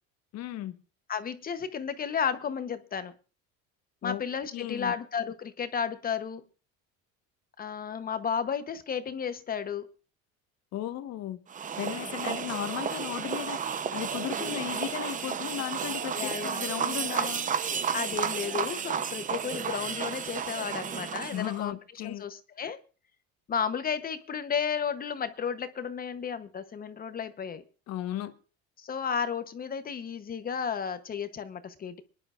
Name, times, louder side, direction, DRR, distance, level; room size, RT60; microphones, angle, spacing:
voice 1, 0.3-0.8 4.0-4.2 4.5-4.9 10.7-11.4 11.8-17.5 21.3-22.2 27.9-28.3, left 12 dB, 60° left, 1.2 m, -35 dB
voice 2, 1.1-3.1 4.0-6.4 7.6-9.9 16.1-16.6 17.1-17.3 17.9-21.8 22.0-22.8 23.5-27.6 28.8-32.0, left 7 dB, 30° left, 0.9 m, -33 dB
sound 1, 11.5-21.6, right 7 dB, 25° right, 0.7 m, -32 dB
25.5 x 10.5 x 2.4 m
cardioid pair, 125°, 30 cm